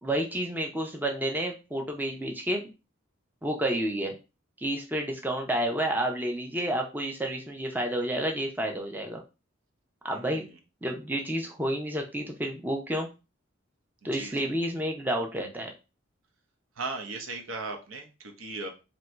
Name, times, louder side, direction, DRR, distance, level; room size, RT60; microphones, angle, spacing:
voice 1, 0.0-2.7 3.4-4.2 4.6-9.2 10.0-10.4 10.8-13.1 14.0-15.7, right 1 dB, 10° right, 2 dB, 0.6 m, -30 dB
voice 2, 10.1-10.6 14.0-14.5 16.8-18.7, right 3 dB, 90° right, 4 dB, 0.9 m, -38 dB
3.0 x 2.6 x 4.4 m, 0.29 s
head